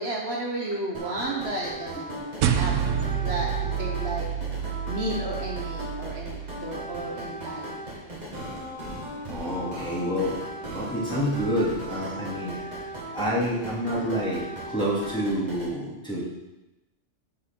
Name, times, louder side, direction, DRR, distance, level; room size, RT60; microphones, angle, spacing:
voice 1, 0.0-4.3 4.9-7.7, right 1 dB, 55° right, -1 dB, 1.4 m, -33 dB
sound 1, 0.9-15.7, right 1 dB, 35° right, 2.0 m, -37 dB
sound 2, 2.4-7.0, right 8 dB, 85° right, 1.0 m, -29 dB
voice 2, 9.3-10.4 10.7-12.7 13.1-16.2, equal, 5° left, -7 dB, 2.3 m, -28 dB
8.3 x 4.8 x 6.0 m, 0.98 s
omnidirectional pair, 1.3 m